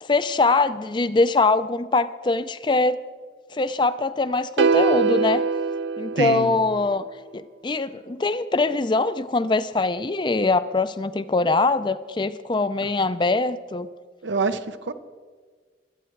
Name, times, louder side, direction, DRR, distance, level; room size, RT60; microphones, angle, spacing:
voice 1, 0.0-3.0 3.5-5.4 6.0-7.0 7.3-13.9, left 3 dB, 25° left, 14 dB, 0.4 m, -22 dB
sound 1, 4.6-6.9, right 4 dB, 70° right, 0.4 m, -22 dB
voice 2, 6.2-6.5 14.2-14.9, right 4 dB, 90° right, 11 dB, 0.8 m, -26 dB
23.0 x 8.7 x 4.6 m, 1.5 s
head